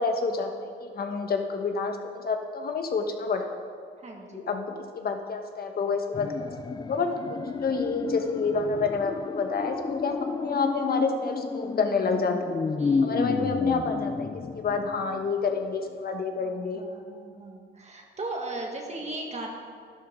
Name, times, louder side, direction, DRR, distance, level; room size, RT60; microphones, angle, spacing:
voice 1, 0.0-3.5 4.3-6.5 6.9-12.5 13.0-14.3 14.5-16.8, left 4 dB, 50° left, 4 dB, 1.3 m, -29 dB
voice 2, 4.0-4.6 7.5-7.6 10.4-10.5 12.8-13.4 16.4-19.5, right 2 dB, 35° right, 0 dB, 1.8 m, -38 dB
sound 1, 6.1-15.3 15.6-15.7, left 5 dB, 20° left, 0.3 m, -31 dB
11.5 x 11.5 x 3.8 m, 2.1 s
cardioid pair, 90°, 20 cm